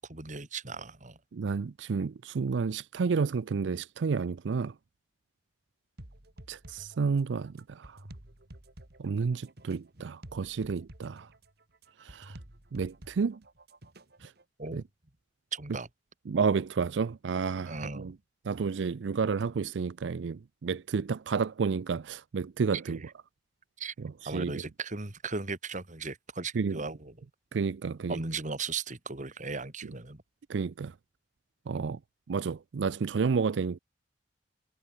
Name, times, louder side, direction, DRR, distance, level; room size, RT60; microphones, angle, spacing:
voice 1, 0.0-1.2 14.6-14.8 15.5-15.9 17.7-18.1 22.7-23.1 23.8-23.9 24.3-27.3 28.1-30.2 31.7-31.9, right 4 dB, 45° right, 2.1 m, -37 dB
voice 2, 1.3-4.7 6.5-8.0 9.0-11.3 12.0-12.4 12.7-13.4 14.2-14.3 14.7-14.8 16.3-18.1 18.5-23.0 24.0-24.6 26.5-26.8 27.5-28.2 30.5-30.9 31.7-32.0 32.3-33.8, right 5 dB, 80° right, 0.4 m, -31 dB
sound 1, 6.0-14.4, right 1 dB, 60° right, 2.5 m, -51 dB
head